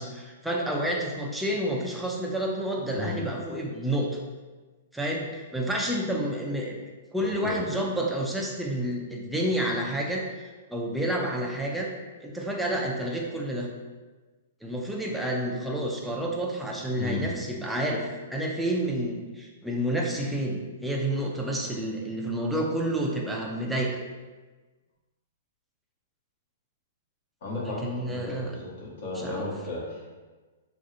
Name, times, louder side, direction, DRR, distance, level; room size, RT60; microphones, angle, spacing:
voice 1, 0.0-4.2 4.9-6.8 7.1-10.2 10.7-11.9 12.2-13.7 14.6-24.0 27.6-28.6 29.1-29.4, right 1 dB, ahead, -2 dB, 0.3 m, -29 dB
voice 2, 7.2-7.6 17.0-17.3 27.4-27.8 28.0-30.1, left 2 dB, 60° left, -4 dB, 1.1 m, -34 dB
3.1 x 2.7 x 2.5 m, 1.3 s
hypercardioid pair, 160°, 0 cm